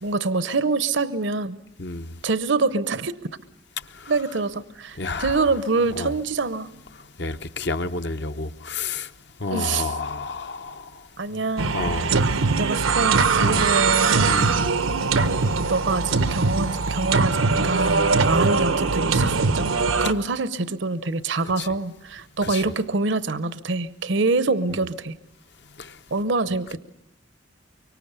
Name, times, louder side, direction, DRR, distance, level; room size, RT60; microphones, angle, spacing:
voice 1, 0.0-1.6 2.2-3.2 4.1-6.7 9.5-10.0 11.2-12.2 12.6-14.4 15.7-25.1 26.1-26.8, right 3 dB, 65° right, 0.8 m, -25 dB
voice 2, 1.8-2.2 3.9-4.1 5.0-5.4 6.0-6.1 7.2-9.1 9.4-11.4 11.7-12.1 12.4-12.6 13.4-13.7 14.3-14.6 18.1-18.3 21.6-21.7 22.4-22.6 25.8-26.0, left 3 dB, 55° left, 0.9 m, -31 dB
sound 1, 11.6-20.1, right 4 dB, 90° right, 1.0 m, -21 dB
24.5 x 24.5 x 6.8 m
head